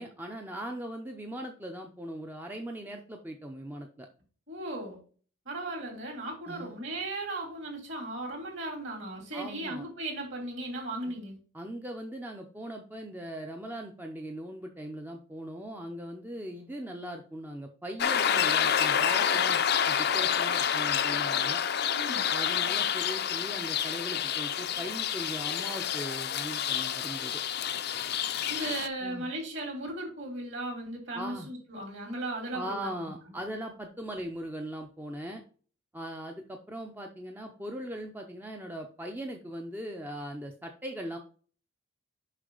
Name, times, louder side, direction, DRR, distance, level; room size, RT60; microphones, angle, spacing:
voice 1, 0.0-4.1 6.5-6.7 9.3-9.8 11.0-11.1 11.5-19.6 19.9-21.6 22.3-27.4 29.0-29.3 31.1-31.5 32.5-35.4 35.9-41.2, equal, 10° right, 3 dB, 0.5 m, -39 dB
voice 2, 4.5-5.0 5.4-11.4 21.9-22.2 28.4-33.2, right 1 dB, 55° right, 0 dB, 3.2 m, -36 dB
sound 1, 18.0-28.9, left 8 dB, 50° left, 0.5 m, -28 dB
6.5 x 5.6 x 3.9 m, 0.41 s
head